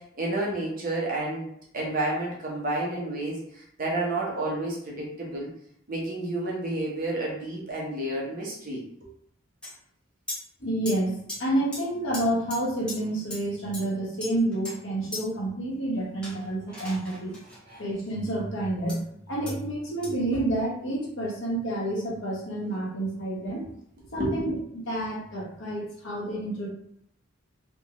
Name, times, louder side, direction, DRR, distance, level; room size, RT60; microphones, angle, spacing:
voice 1, 0.0-1.5 1.7-5.5 5.9-8.8 17.7-17.9 24.1-24.6, right 2 dB, 40° right, -3 dB, 0.8 m, -30 dB
sound 1, 9.6-9.7 10.3-10.4 10.9-11.0 11.3-11.4 11.7-11.8 12.1-12.2 12.5-12.6 12.9-13.0 13.3-13.4 13.7-13.8 14.2-14.8 15.1-15.2 16.2-17.6 18.9-19.0 19.5-19.6 20.0-20.1, left 1 dB, 5° left, 0.9 m, -37 dB
voice 2, 10.6-11.1 11.4-17.3 17.8-23.6 24.1-24.5 24.9-26.7, right 1 dB, 65° left, -4 dB, 1.1 m, -29 dB
3.5 x 2.3 x 3.0 m, 0.69 s
head